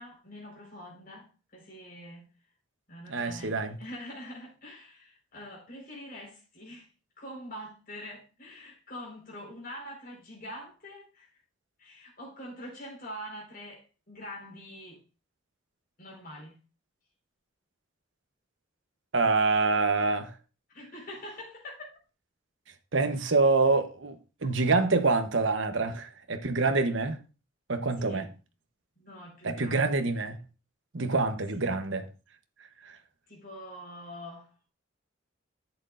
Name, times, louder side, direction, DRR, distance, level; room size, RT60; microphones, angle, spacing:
voice 1, 0.0-2.3 2.9-6.9 7.2-11.4 11.8-15.0 16.0-16.6 20.7-21.9 28.0-28.3 29.0-30.1 31.5-31.7 33.3-34.5, equal, 45° left, 4.7 m, -44 dB
voice 2, 3.1-3.8 19.1-20.3 22.9-24.2 24.4-27.2 27.7-28.2 29.4-30.4 30.9-32.1 32.8-33.0, right 3 dB, 70° right, 1.0 m, -26 dB
10.5 x 7.8 x 2.6 m
head